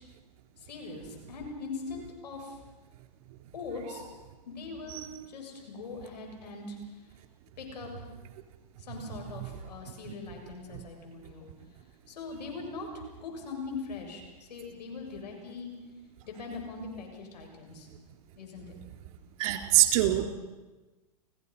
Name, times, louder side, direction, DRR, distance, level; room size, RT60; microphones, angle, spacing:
voice 1, 0.6-2.6 3.5-4.0 4.5-6.8 7.6-8.1 8.8-11.5 12.1-15.7 16.2-17.9 18.4-18.8 19.4-19.5, left 4 dB, 80° left, 2 dB, 7.2 m, -41 dB
voice 2, 19.4-20.3, right 14 dB, 55° right, 5 dB, 3.9 m, -24 dB
29.5 x 17.5 x 5.8 m, 1.2 s
hypercardioid pair, 125°, 21 cm